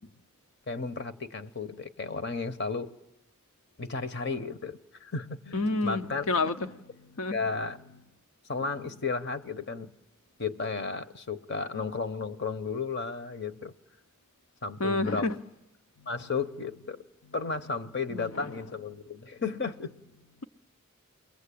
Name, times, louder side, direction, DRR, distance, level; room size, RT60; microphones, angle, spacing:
voice 1, 0.7-2.9 3.8-6.3 7.3-7.8 8.5-9.9 10.4-13.7 14.6-15.3 16.1-17.0 17.3-19.9, left 4 dB, 55° left, 0.9 m, -33 dB
voice 2, 5.5-6.7 7.2-7.4 14.8-15.4 18.1-18.5, left 3 dB, 85° left, 0.9 m, -29 dB
30.0 x 21.5 x 8.5 m
head